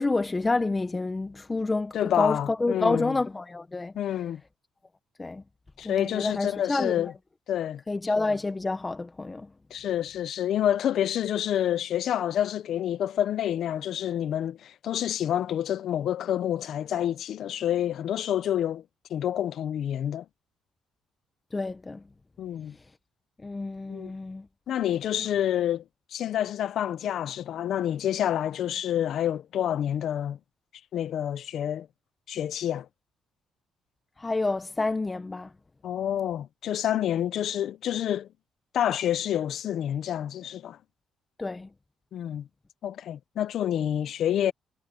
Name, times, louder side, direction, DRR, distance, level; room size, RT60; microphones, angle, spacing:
voice 1, 0.0-3.9 5.2-5.4 5.8-7.1 7.9-9.5 21.5-22.0 23.4-24.5 34.2-35.5 41.4-41.7, left 3 dB, 20° left, 1.2 m, -28 dB
voice 2, 1.9-3.1 3.9-4.4 5.8-7.1 7.5-7.8 9.7-18.8 19.1-20.2 22.4-22.7 23.9-24.1 24.7-25.8 26.1-30.4 30.9-31.9 32.3-32.9 35.8-38.3 38.7-40.8 42.1-42.5 42.8-44.5, left 10 dB, 70° left, 1.1 m, -28 dB
cardioid pair, 90°, 0 cm